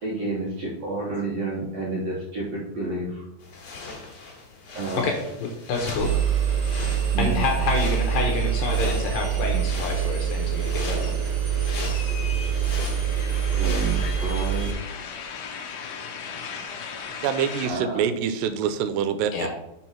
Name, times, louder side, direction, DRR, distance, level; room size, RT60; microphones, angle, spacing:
voice 1, 0.0-3.2 4.7-5.1 7.1-7.4 13.5-14.7 17.6-18.0, right 2 dB, 65° right, -5 dB, 1.7 m, -30 dB
sound 1, 3.4-14.1, left 3 dB, 55° left, 2.0 m, -39 dB
voice 2, 5.0-6.1 7.2-11.2 19.3-19.5, left 4 dB, 75° left, 1 dB, 2.2 m, -28 dB
Engine, 6.0-14.7, right 8 dB, 50° right, 2.3 m, -25 dB
sound 2, 9.0-9.9 10.2-17.7, left 6 dB, 90° left, 1.7 m, -38 dB
voice 3, 17.2-19.5, right 8 dB, 85° right, 10 dB, 2.7 m, -25 dB
6.0 x 4.5 x 5.6 m, 0.84 s
omnidirectional pair, 4.8 m